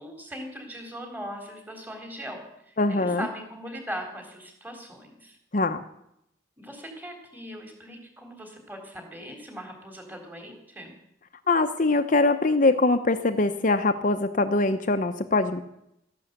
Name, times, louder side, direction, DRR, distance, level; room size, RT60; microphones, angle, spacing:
voice 1, 0.0-5.4 6.6-11.0, equal, 10° right, 3 dB, 3.7 m, -40 dB
voice 2, 2.8-3.3 5.5-5.8 11.5-15.6, left 2 dB, 45° left, 8 dB, 0.8 m, -23 dB
14.0 x 11.0 x 8.1 m, 0.78 s
head